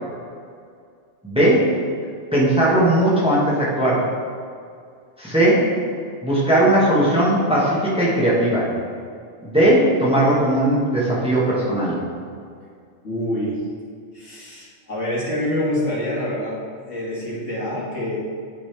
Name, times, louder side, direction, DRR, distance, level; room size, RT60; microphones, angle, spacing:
voice 1, 1.2-1.7 2.3-4.1 5.2-5.7 6.2-8.7 9.4-12.0, right 1 dB, 5° right, -7 dB, 1.4 m, -18 dB
voice 2, 13.0-13.6 14.1-16.6 16.9-18.2, left 1 dB, 80° left, -8 dB, 2.3 m, -26 dB
10.5 x 4.1 x 3.3 m, 2.2 s
omnidirectional pair, 1.2 m